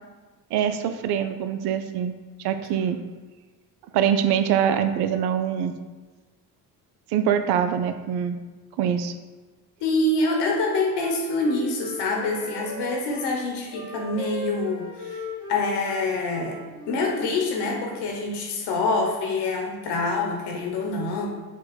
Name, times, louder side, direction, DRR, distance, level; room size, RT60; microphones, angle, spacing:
voice 1, 0.5-2.1 2.4-3.0 3.9-5.7 7.1-8.4 8.8-9.1, right 8 dB, 70° right, 9 dB, 0.5 m, -24 dB
voice 2, 9.8-15.2 15.5-16.6 16.9-21.3, left 3 dB, 75° left, 1 dB, 1.0 m, -26 dB
Wind instrument woodwind instrument, 10.6-13.3 13.7-17.1, equal, 10° right, 1.4 m, -38 dB
4.5 x 2.3 x 4.2 m, 1.3 s
supercardioid pair, 70°, 41 cm